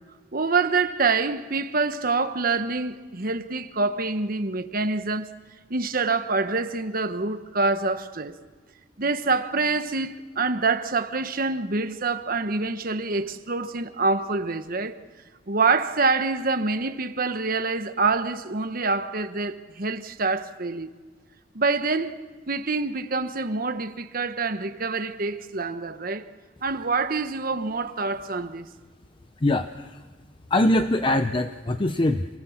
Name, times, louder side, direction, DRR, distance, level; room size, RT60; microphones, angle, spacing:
voice 1, 0.3-5.3 5.7-8.3 9.0-15.0 15.5-20.9 21.5-22.2 22.5-26.3 26.6-28.7, right 3 dB, 50° right, 1.2 m, -26 dB
voice 2, 29.4-30.0 30.5-32.3, left 1 dB, 30° left, 0.7 m, -23 dB
28.0 x 18.0 x 7.2 m
head